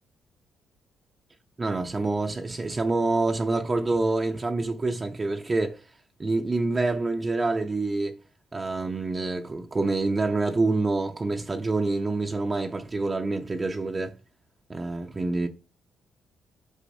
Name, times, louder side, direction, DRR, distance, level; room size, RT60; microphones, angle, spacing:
voice 1, 1.6-5.8 6.2-8.2 8.5-14.2 14.7-15.5, right 3 dB, 25° right, 0.6 m, -27 dB
8.3 x 4.6 x 2.6 m
cardioid pair, 90°, 0 cm